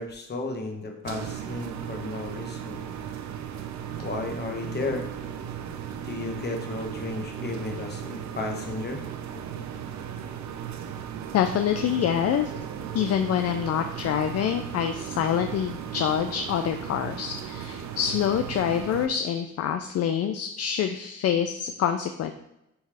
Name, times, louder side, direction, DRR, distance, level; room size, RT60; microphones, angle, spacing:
voice 1, 0.0-2.8 3.9-5.0 6.0-9.0, left 3 dB, 35° left, 2 dB, 1.2 m, -33 dB
sound 1, 1.0-19.1, right 9 dB, 65° right, 0.6 m, -36 dB
voice 2, 11.3-12.5 12.9-22.3, left 9 dB, 55° left, 7 dB, 0.5 m, -26 dB
9.5 x 3.2 x 3.4 m, 0.86 s
cardioid pair, 90°, 30 cm